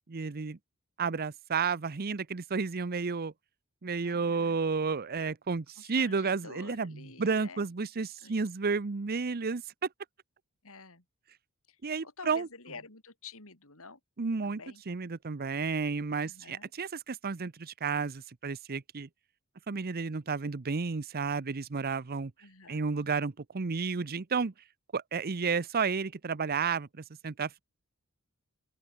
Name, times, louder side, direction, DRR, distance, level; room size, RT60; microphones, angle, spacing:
voice 1, 0.1-0.6 1.0-3.3 3.8-9.6 11.8-12.5 14.2-14.6 14.9-19.1 19.7-22.3 22.7-24.5 24.9-27.6, right 5 dB, 45° right, 0.7 m, -32 dB
voice 2, 4.0-4.6 5.8-7.7 8.2-8.4 10.6-11.0 11.7-14.0 14.4-14.8 16.2-16.7 22.4-22.9, left 4 dB, 65° left, 6.3 m, -49 dB
open air
head